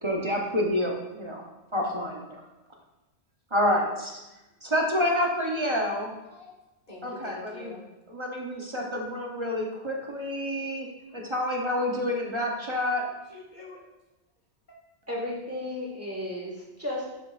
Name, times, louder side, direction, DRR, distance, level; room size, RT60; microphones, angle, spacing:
voice 1, 0.0-1.4 1.7-2.4 3.5-4.2 4.6-6.2 7.0-7.7 8.1-10.9 11.1-13.0, left 1 dB, 30° right, -1 dB, 0.8 m, -28 dB
voice 2, 6.3-6.6 6.9-7.8 10.8-11.2 12.3-12.5 13.0-13.8 14.7-14.8, left 2 dB, 40° left, -4 dB, 1.9 m, -48 dB
voice 3, 15.1-17.1, left 1 dB, 10° right, -4 dB, 1.6 m, -34 dB
9.9 x 5.1 x 2.5 m, 1.0 s
omnidirectional pair, 1.2 m